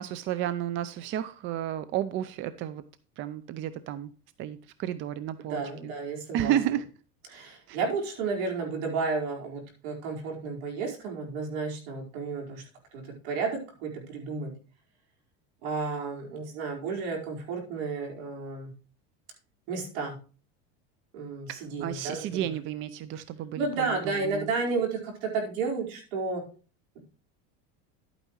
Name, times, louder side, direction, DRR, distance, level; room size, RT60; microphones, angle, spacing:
voice 1, 0.0-2.8 3.2-4.1 4.4-5.9 6.3-6.8 7.7-7.8 21.5-24.5, right 11 dB, 35° right, 0.6 m, -32 dB
voice 2, 5.5-6.5 7.3-12.6 12.9-14.5 15.6-18.7 19.7-20.2 21.1-22.5 23.6-26.4, right 4 dB, 75° right, 4.7 m, -32 dB
12.0 x 9.0 x 3.1 m
supercardioid pair, 145°, 32 cm